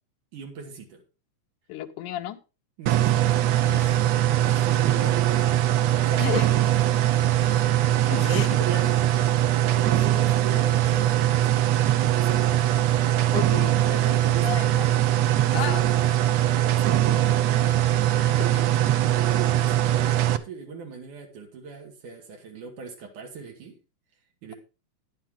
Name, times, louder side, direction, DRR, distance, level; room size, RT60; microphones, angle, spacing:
voice 1, 0.3-1.0 2.8-4.0 4.4-6.7 7.4-7.8 8.1-9.3 9.6-12.5 13.1-13.4 13.8-14.9 15.4-16.1 16.3-17.8 18.3-23.7 24.4-24.5, right 5 dB, 90° right, 1 dB, 3.8 m, -39 dB
voice 2, 1.7-2.4 3.7-3.9 6.2-6.5 7.4-7.6 8.1-8.5 13.3-13.8 14.4-14.8 15.5-15.8, left 13 dB, 90° left, 7 dB, 2.4 m, -32 dB
sound 1, 2.9-20.4, right 13 dB, 70° right, 1.8 m, -21 dB
12.0 x 10.5 x 3.7 m, 0.31 s
omnidirectional pair, 3.4 m